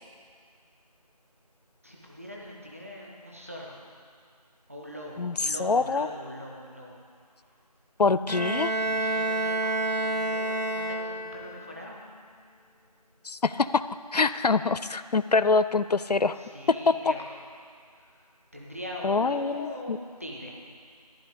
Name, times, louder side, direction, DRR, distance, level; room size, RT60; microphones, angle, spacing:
voice 1, 1.8-3.8 4.7-7.0 8.8-12.0 16.3-17.3 18.0-18.3 18.5-20.6, equal, 20° right, -3 dB, 1.1 m, -41 dB
voice 2, 5.6-6.1 8.0-8.7 13.3-13.8 14.1-16.4 16.9-17.0 19.0-20.0, left 4 dB, 75° left, 14 dB, 0.5 m, -24 dB
Bowed string instrument, 8.3-11.5, right 2 dB, 85° right, 1.6 m, -28 dB
14.0 x 11.0 x 5.1 m, 2.1 s
figure-of-eight pair, 175°, 21 cm